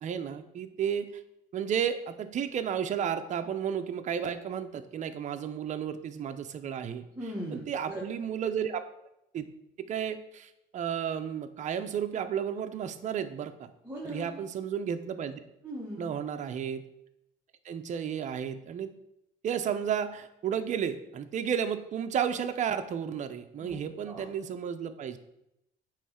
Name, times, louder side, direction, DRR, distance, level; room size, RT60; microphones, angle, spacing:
voice 1, 0.0-1.1 1.5-7.0 7.5-8.8 9.3-9.5 9.9-13.7 14.0-15.4 16.0-16.8 17.6-18.9 19.4-25.2, right 8 dB, 45° right, 8 dB, 0.6 m, -32 dB
voice 2, 7.1-8.0 13.8-14.3 15.6-16.1 23.6-23.8 24.0-24.3, equal, 15° right, -4 dB, 1.6 m, -39 dB
8.4 x 3.1 x 5.6 m, 0.83 s
cardioid pair, 110°, 17 cm